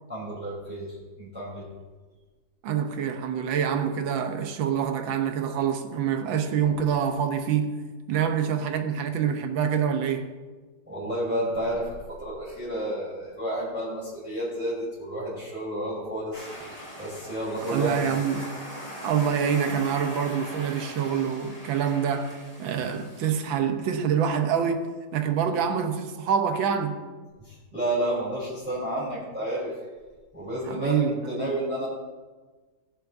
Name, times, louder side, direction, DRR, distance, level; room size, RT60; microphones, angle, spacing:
voice 1, 0.1-0.9 1.2-1.6 10.9-11.9 12.2-16.5 17.0-18.1 27.5-29.7 30.3-31.9, right 1 dB, 5° right, 3.5 m, -31 dB
voice 2, 2.6-10.3 17.6-18.5 19.0-22.3 22.6-27.0 30.7-31.6, right 7 dB, 85° right, 1.7 m, -26 dB
sound 1, 16.3-23.3, equal, 25° left, 2.9 m, -40 dB
21.0 x 7.1 x 2.7 m
omnidirectional pair, 2.1 m